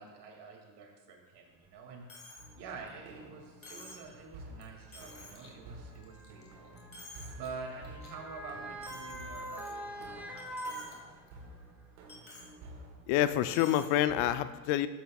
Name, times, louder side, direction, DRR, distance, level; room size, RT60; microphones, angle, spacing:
voice 1, 0.0-2.1 2.6-6.7 7.3-10.6, right 4 dB, 55° right, 1 dB, 2.5 m, -47 dB
Motor vehicle (road) / Siren, 1.7-1.8 2.7-2.9 4.0-11.6 12.0-12.1, right 1 dB, 5° right, 2.0 m, -45 dB
Coin (dropping), 2.1-2.5 2.9-3.0 3.6-4.1 4.6-4.7 4.9-5.5 5.9-6.5 6.8-7.5 7.8-8.1 8.8-10.0 10.4-10.9 11.3-11.4 12.1-12.5 13.5-13.9, left 2 dB, 25° left, 2.1 m, -50 dB
sound 1, 2.4-14.2, right 1 dB, 85° right, 1.9 m, -52 dB
voice 2, 13.1-14.9, left 12 dB, 70° left, 12 dB, 0.6 m, -27 dB
13.0 x 8.6 x 2.4 m, 1.3 s
supercardioid pair, 105°, 47 cm